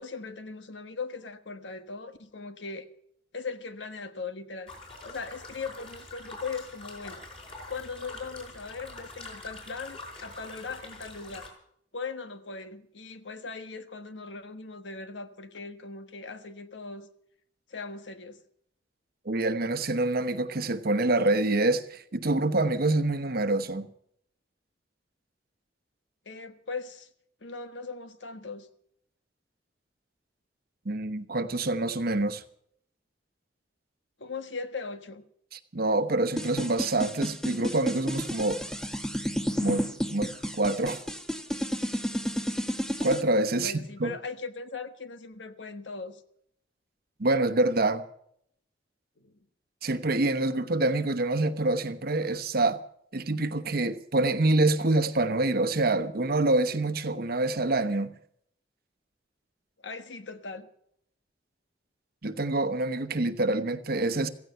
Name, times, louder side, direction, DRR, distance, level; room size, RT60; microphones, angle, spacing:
voice 1, 0.0-2.9 3.3-4.7 5.0-7.2 7.7-11.5 11.9-17.1 17.7-18.4 26.2-27.1 27.4-28.7 34.2-35.2 43.5-46.2 49.2-49.3 59.8-60.7, left 4 dB, 80° left, 1.3 m, -39 dB
sound 1, 4.7-11.5, left 2 dB, 35° left, 5.2 m, -45 dB
voice 2, 19.2-23.9 30.8-32.4 35.5-38.6 39.6-41.0 43.0-44.2 47.2-48.0 49.8-52.8 53.1-58.1 62.2-64.3, right 2 dB, 55° right, 1.0 m, -26 dB
sound 2, 36.4-43.2, equal, 5° left, 1.0 m, -31 dB
16.0 x 15.5 x 5.7 m
head